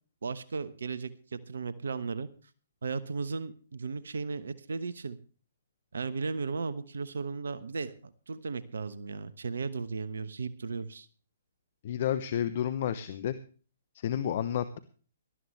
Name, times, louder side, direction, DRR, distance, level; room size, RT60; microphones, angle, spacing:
voice 1, 0.2-2.3 2.8-5.2 5.9-11.1, right 4 dB, 70° right, 15 dB, 1.1 m, -36 dB
voice 2, 11.8-13.3 13.9-14.8, left 10 dB, 50° left, 12 dB, 1.0 m, -30 dB
18.5 x 13.0 x 3.2 m, 0.38 s
figure-of-eight pair, 125°, 0 cm